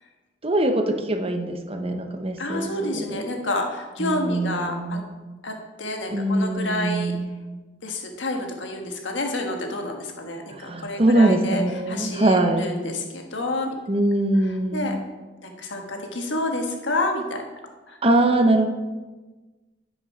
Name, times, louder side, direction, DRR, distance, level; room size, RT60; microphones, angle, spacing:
voice 1, 0.4-3.1 4.0-5.1 6.1-7.3 10.5-12.7 13.9-15.0 18.0-18.7, right 1 dB, 30° right, 6 dB, 0.8 m, -22 dB
voice 2, 2.4-5.0 5.4-7.1 7.8-13.7 14.7-15.0 15.4-17.4 17.9-18.0, left 1 dB, 90° left, 3 dB, 1.5 m, -29 dB
10.5 x 6.5 x 4.4 m, 1.2 s
head